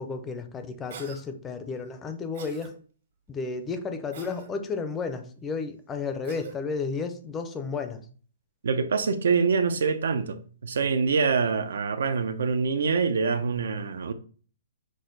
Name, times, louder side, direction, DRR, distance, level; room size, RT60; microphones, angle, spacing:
voice 1, 0.0-2.7 3.3-8.1, left 4 dB, 15° left, 0.5 m, -32 dB
Cough, 0.9-1.2 2.3-2.7 4.1-4.5 6.2-6.6, right 6 dB, 60° right, 1.4 m, -43 dB
voice 2, 8.6-14.1, right 5 dB, 75° right, 0.6 m, -25 dB
6.2 x 2.1 x 3.8 m
hypercardioid pair, 165°, 0 cm